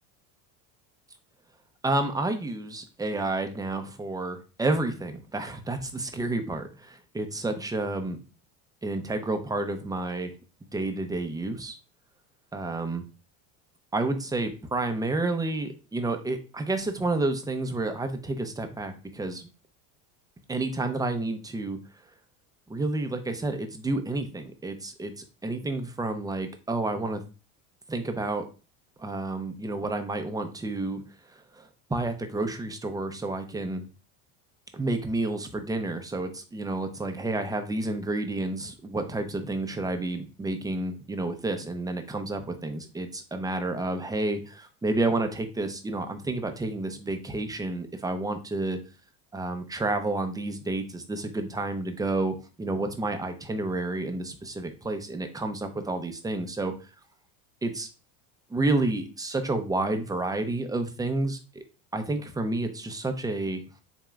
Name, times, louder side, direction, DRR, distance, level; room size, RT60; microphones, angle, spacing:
voice 1, 1.8-8.2 8.8-10.3 10.7-11.8 12.5-13.0 13.9-19.5 20.5-21.8 22.7-27.2 27.9-28.5 29.0-31.0 31.3-33.8 34.7-48.8 49.3-56.9 57.6-57.9 58.5-61.6 61.9-63.6, right 2 dB, 10° right, 7 dB, 0.6 m, -30 dB
7.5 x 2.8 x 2.4 m, 0.32 s
supercardioid pair, 110°, 42 cm